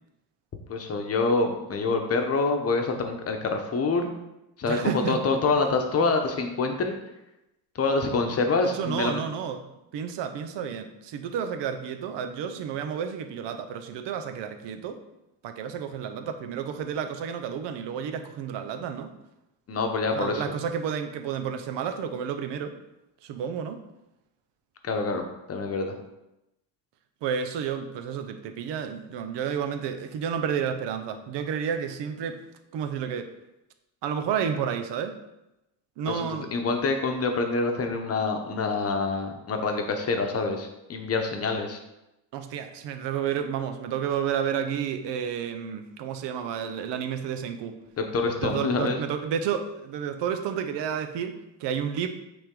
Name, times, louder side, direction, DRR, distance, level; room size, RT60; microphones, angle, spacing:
voice 1, 0.7-4.2 4.6-7.0 7.7-9.2 19.7-20.4 24.8-26.0 36.1-41.8 48.0-49.0, left 3 dB, 35° left, 5 dB, 0.9 m, -26 dB
voice 2, 4.6-5.6 8.7-9.7 9.9-15.0 15.4-19.1 20.1-22.7 23.2-23.8 27.2-32.4 32.7-33.3 34.0-35.2 36.0-36.5 42.3-47.8 48.4-52.1, right 7 dB, 75° right, 8 dB, 0.8 m, -31 dB
8.7 x 3.5 x 3.7 m, 0.91 s
cardioid pair, 140°, 43 cm